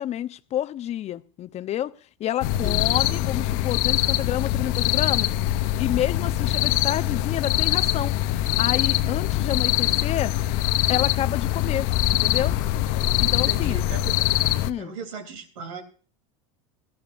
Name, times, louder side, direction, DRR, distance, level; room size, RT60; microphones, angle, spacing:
voice 1, 0.0-1.9 2.2-5.3 5.8-8.2 8.6-10.3 10.9-12.6 13.2-13.8 14.6-14.9, left 11 dB, 40° left, 0.8 m, -29 dB
sound 1, 2.4-14.7, left 14 dB, 65° left, 0.9 m, -23 dB
voice 2, 2.5-3.1 13.3-14.2 14.8-15.8, right 3 dB, 80° right, 3.4 m, -37 dB
18.5 x 14.0 x 2.6 m
hypercardioid pair, 100°, 17 cm